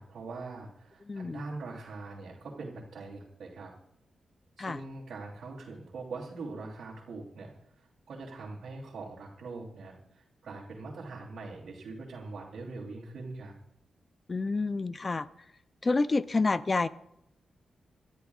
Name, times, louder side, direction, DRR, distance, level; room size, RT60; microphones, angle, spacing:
voice 1, 0.0-3.7 4.6-7.5 8.1-13.5, right 3 dB, 75° right, -7 dB, 3.1 m, -42 dB
voice 2, 1.1-1.4 4.6-4.8 14.3-15.3 15.8-16.9, left 3 dB, 30° left, 14 dB, 0.5 m, -28 dB
27.5 x 13.0 x 2.4 m, 0.80 s
wide cardioid pair, 130°, 0 cm